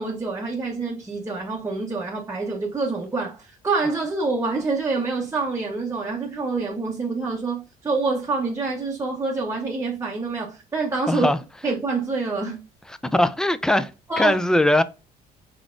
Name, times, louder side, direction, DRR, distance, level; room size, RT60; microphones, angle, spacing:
voice 1, 0.0-11.3 11.6-12.6 14.1-14.4, right 3 dB, 15° right, 0.8 m, -26 dB
voice 2, 11.1-11.4 13.0-13.9 14.2-14.8, left 1 dB, 5° left, 0.4 m, -20 dB
4.6 x 4.1 x 2.4 m
cardioid pair, 110°, 17 cm